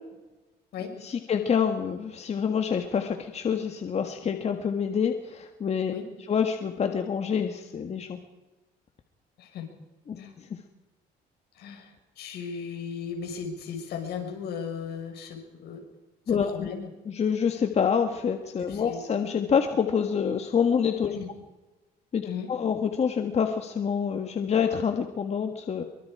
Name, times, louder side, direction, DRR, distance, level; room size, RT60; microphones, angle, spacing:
voice 1, 1.0-5.9 6.3-8.2 10.1-10.2 16.3-16.7 17.1-21.2 22.1-25.8, left 7 dB, 40° left, 6 dB, 1.8 m, -27 dB
voice 2, 9.4-9.7 10.1-10.3 11.6-15.8 16.3-16.9 18.7-19.0 21.1-21.3 22.2-22.5, left 6 dB, 75° left, 4 dB, 5.5 m, -36 dB
24.0 x 24.0 x 4.9 m, 1.1 s
cardioid pair, 110°, 17 cm